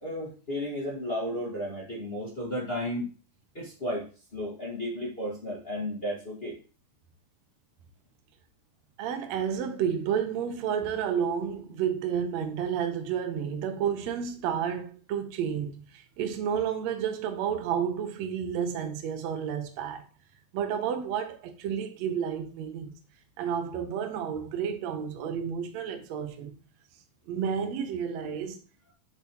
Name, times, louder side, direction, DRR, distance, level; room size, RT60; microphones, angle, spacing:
voice 1, 0.0-3.1 3.5-6.6, equal, 30° left, 1.1 m, -33 dB
voice 2, 9.0-20.0 20.5-23.0 23.4-26.6 27.3-28.6, right 8 dB, 70° right, 1.8 m, -31 dB
7.1 x 6.3 x 2.9 m
omnidirectional pair, 3.7 m